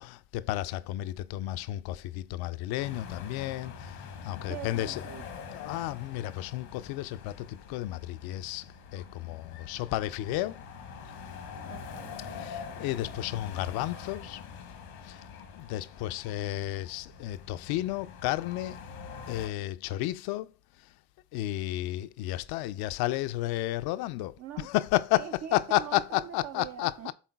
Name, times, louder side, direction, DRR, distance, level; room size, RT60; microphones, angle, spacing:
voice 1, 0.0-3.9 4.2-5.0 5.5-8.6 8.9-10.6 12.4-14.4 15.6-18.8 19.3-20.5 21.3-24.3 24.6-26.9, left 15 dB, 65° left, 0.5 m, -32 dB
sound 1, 2.8-19.5, left 6 dB, 85° left, 1.1 m, -44 dB
voice 2, 4.5-5.2 11.6-12.5 24.4-24.7 25.1-27.1, right 10 dB, 40° right, 0.4 m, -43 dB
11.0 x 3.8 x 2.3 m
hypercardioid pair, 55°, 41 cm